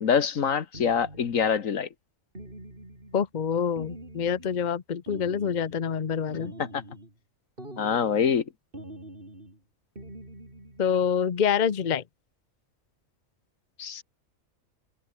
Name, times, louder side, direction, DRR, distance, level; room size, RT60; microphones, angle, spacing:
voice 1, 0.0-1.9 6.7-6.8 7.8-8.4 13.8-14.0, left 7 dB, 75° left, 1.7 m, -25 dB
sound 1, 0.7-1.6 2.3-3.3 3.8-4.7 5.1-5.9 6.3-7.2 7.6-8.4 8.7-9.6 10.0-10.9, right 1 dB, 40° right, 7.2 m, -44 dB
voice 2, 3.1-6.5 10.8-12.0, left 7 dB, 40° left, 0.9 m, -26 dB
omnidirectional pair, 1.4 m